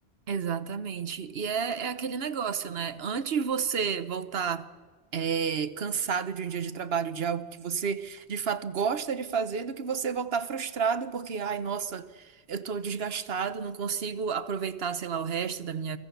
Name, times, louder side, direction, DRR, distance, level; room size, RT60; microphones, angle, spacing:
voice 1, 0.3-4.7 5.1-16.0, right 6 dB, 70° right, 1.3 m, -31 dB
29.5 x 22.5 x 6.9 m
omnidirectional pair, 1.1 m